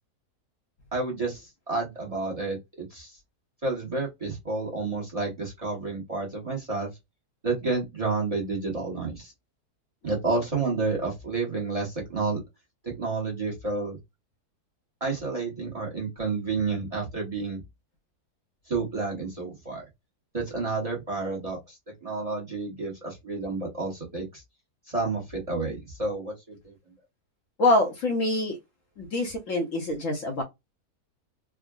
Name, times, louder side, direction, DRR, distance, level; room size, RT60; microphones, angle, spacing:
voice 1, 0.9-3.2 3.6-6.9 7.4-9.3 10.0-12.4 12.8-14.0 15.0-17.6 18.7-19.8 20.3-24.4 24.9-26.7, right 3 dB, 25° right, 1.0 m, -30 dB
voice 2, 27.6-28.6 29.0-30.4, left 2 dB, 60° left, 1.0 m, -25 dB
3.5 x 2.1 x 2.3 m
omnidirectional pair, 1.7 m